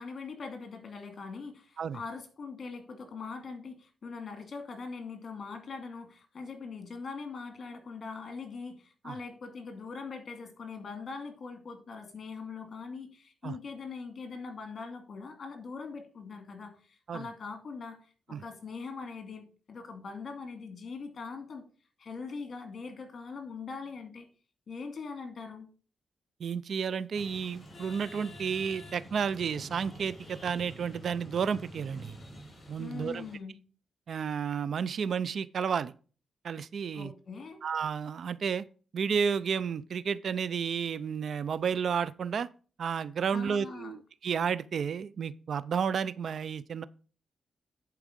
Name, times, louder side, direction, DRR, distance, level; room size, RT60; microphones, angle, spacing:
voice 1, 0.0-18.0 18.3-21.6 22.0-24.3 24.7-25.7 32.8-33.6 36.9-37.6 43.3-44.0, left 4 dB, 50° left, 2.6 m, -42 dB
voice 2, 26.4-32.2 32.7-33.3 34.1-35.9 36.4-37.1 37.6-38.6 38.9-42.5 42.8-46.8, right 7 dB, 65° right, 0.4 m, -32 dB
sound 1, 27.1-33.4, equal, 35° left, 4.0 m, -48 dB
10.5 x 4.7 x 5.2 m
cardioid pair, 90°, 0 cm